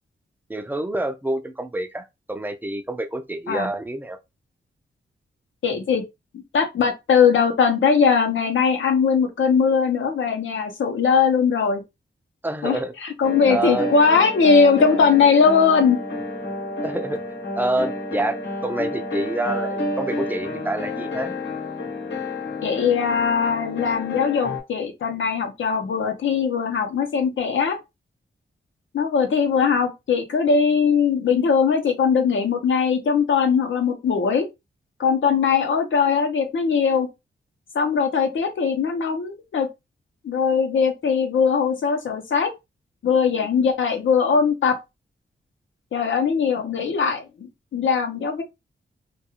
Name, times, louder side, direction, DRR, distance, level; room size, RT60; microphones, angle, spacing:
voice 1, 0.5-4.2 12.4-12.9 13.5-13.9 16.8-17.2 17.6-18.4 18.6-21.4, right 1 dB, 10° right, 0.3 m, -27 dB
voice 2, 5.6-6.0 6.5-11.8 12.6-16.0 22.6-27.8 28.9-34.5 35.0-37.1 37.7-39.7 40.2-42.5 43.0-44.8 45.9-48.4, left 6 dB, 85° left, 0.7 m, -20 dB
sound 1, 13.2-24.6, left 2 dB, 70° left, 1.0 m, -30 dB
2.3 x 2.3 x 2.8 m
wide cardioid pair, 175°, 19 cm